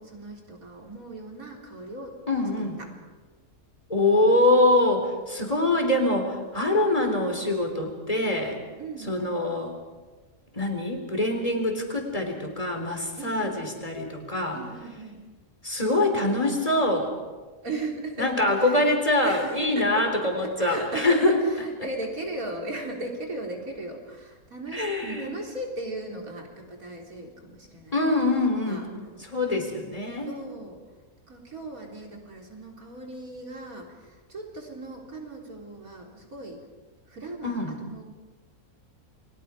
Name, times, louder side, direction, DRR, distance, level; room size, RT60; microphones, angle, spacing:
voice 1, 0.0-2.1 4.2-4.4 5.4-5.6 8.8-9.1 13.2-13.6 14.5-15.2 17.6-18.9 19.2-20.0 20.4-29.3 30.3-30.8 31.3-36.6 37.1-38.1, right 2 dB, 75° right, 0 dB, 4.3 m, -37 dB
voice 2, 2.3-2.8 3.9-8.6 9.0-9.7 10.5-14.6 15.6-17.1 18.2-21.4 24.7-25.3 27.9-28.9 29.2-30.3 37.4-37.7, left 2 dB, 25° left, 3 dB, 3.7 m, -24 dB
29.5 x 23.0 x 5.1 m, 1.3 s
omnidirectional pair, 1.5 m